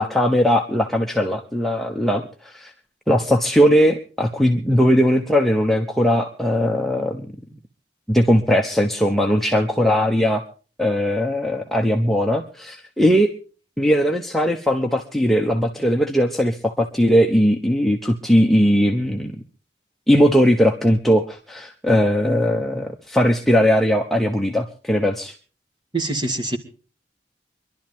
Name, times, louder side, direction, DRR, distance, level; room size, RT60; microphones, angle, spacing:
voice 1, 0.0-2.7 3.1-7.3 8.1-10.4 10.8-13.3 13.8-19.3 20.1-25.3, equal, ahead, 2 dB, 1.0 m, -19 dB
voice 2, 25.9-26.6, right 2 dB, 25° right, 6 dB, 2.1 m, -24 dB
25.0 x 12.0 x 3.6 m, 0.39 s
head